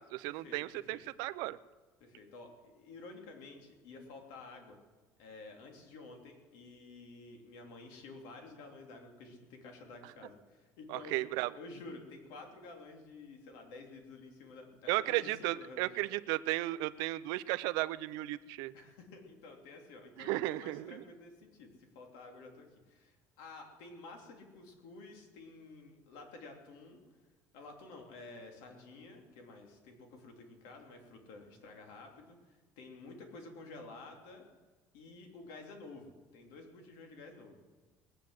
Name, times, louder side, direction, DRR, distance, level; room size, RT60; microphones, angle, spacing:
voice 1, 0.0-1.6 10.9-11.5 14.9-18.7 20.2-21.0, right 18 dB, 80° right, 15 dB, 0.6 m, -35 dB
voice 2, 2.0-4.8 5.2-11.2 11.6-15.9 18.7-27.0 27.5-34.4 34.9-37.6, left 3 dB, 85° left, 3 dB, 3.1 m, -51 dB
20.0 x 9.1 x 7.7 m, 1.3 s
cardioid pair, 160°, 7 cm